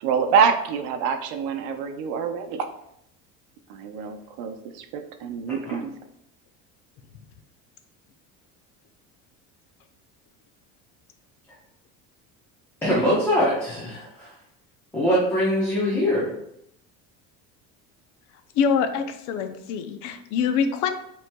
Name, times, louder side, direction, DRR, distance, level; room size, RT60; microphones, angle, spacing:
voice 1, 0.0-2.7 3.7-5.9, right 6 dB, 80° right, 7 dB, 0.7 m, -25 dB
voice 2, 12.8-14.3 14.9-16.3, equal, 5° left, -8 dB, 0.8 m, -23 dB
voice 3, 18.5-20.9, left 6 dB, 60° left, 8 dB, 0.6 m, -24 dB
7.5 x 3.1 x 2.2 m, 0.76 s
cardioid pair, 175°, 33 cm